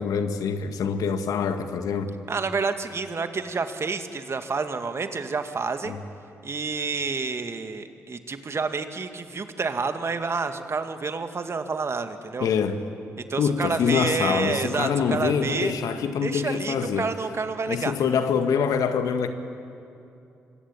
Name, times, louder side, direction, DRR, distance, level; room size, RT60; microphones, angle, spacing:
voice 1, 0.0-2.1 5.9-6.0 12.4-12.8 13.4-17.1 17.7-19.3, left 6 dB, 70° left, 8 dB, 1.8 m, -25 dB
voice 2, 2.3-6.0 6.4-12.5 13.3-15.7 16.2-17.9, right 4 dB, 45° right, 8 dB, 2.0 m, -29 dB
26.0 x 21.5 x 8.9 m, 2.7 s
hypercardioid pair, 40°, 6 cm